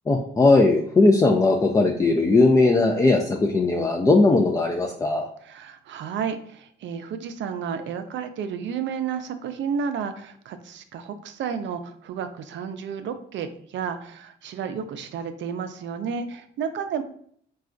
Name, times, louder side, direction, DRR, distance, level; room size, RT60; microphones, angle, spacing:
voice 1, 0.1-5.3, left 3 dB, 15° left, 2 dB, 0.3 m, -19 dB
voice 2, 5.4-17.0, right 7 dB, 70° right, 9 dB, 0.5 m, -31 dB
4.1 x 2.3 x 2.5 m, 0.62 s
cardioid pair, 90°, 20 cm